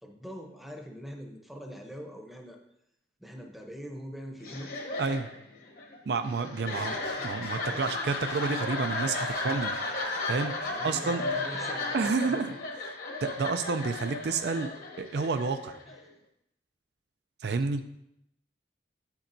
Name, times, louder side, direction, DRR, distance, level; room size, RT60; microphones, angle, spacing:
voice 1, 0.0-2.6 3.2-4.7 6.6-7.3 7.7-8.0 9.1-9.4 10.6-12.6 15.9-16.1, equal, ahead, 2 dB, 0.7 m, -44 dB
sound 1, 4.4-16.1, left 2 dB, 55° left, 1.1 m, -34 dB
voice 2, 6.1-7.0 7.2-9.7 10.3-10.5 10.8-11.2 11.9-12.5 13.2-14.7 15.0-15.8 17.4-17.8, right 4 dB, 70° right, 9 dB, 0.4 m, -29 dB
7.7 x 7.2 x 2.6 m, 0.79 s
head